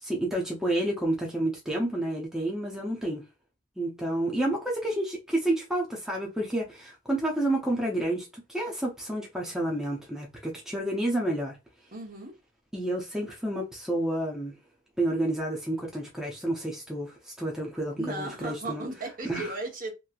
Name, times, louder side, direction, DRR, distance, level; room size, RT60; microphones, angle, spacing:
voice 1, 0.0-3.2 3.8-11.5 12.7-14.5 15.0-18.8 19.2-19.5, right 1 dB, 5° right, 0.6 m, -30 dB
voice 2, 11.9-12.3 18.0-19.9, right 2 dB, 45° right, 1.0 m, -36 dB
2.9 x 2.7 x 2.4 m
head